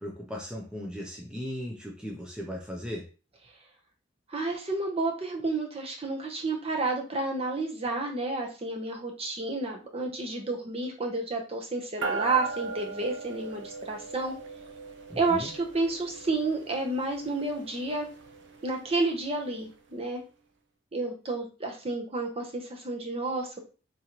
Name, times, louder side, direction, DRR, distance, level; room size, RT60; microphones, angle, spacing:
voice 1, 0.0-3.1 15.1-15.5, equal, 5° right, -2 dB, 0.6 m, -37 dB
voice 2, 4.3-14.3 15.2-18.1 18.6-20.2 20.9-23.6, right 3 dB, 30° right, 2 dB, 0.8 m, -30 dB
sound 1, 12.0-19.7, right 4 dB, 70° right, 0.6 m, -40 dB
3.8 x 3.1 x 2.9 m, 0.34 s
head